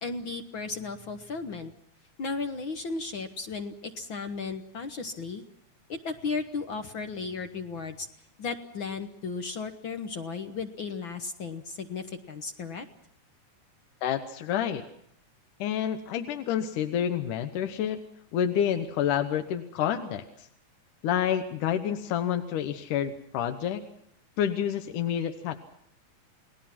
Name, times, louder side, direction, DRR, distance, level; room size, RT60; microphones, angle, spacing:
voice 1, 0.0-1.7 2.2-5.4 5.9-8.1 8.4-12.8, left 4 dB, 60° left, 7 dB, 1.4 m, -35 dB
voice 2, 14.0-14.8 15.6-18.0 18.3-20.5 21.0-23.8 24.4-25.6, left 9 dB, 85° left, 7 dB, 2.7 m, -28 dB
30.0 x 19.0 x 6.0 m, 0.70 s
omnidirectional pair, 3.5 m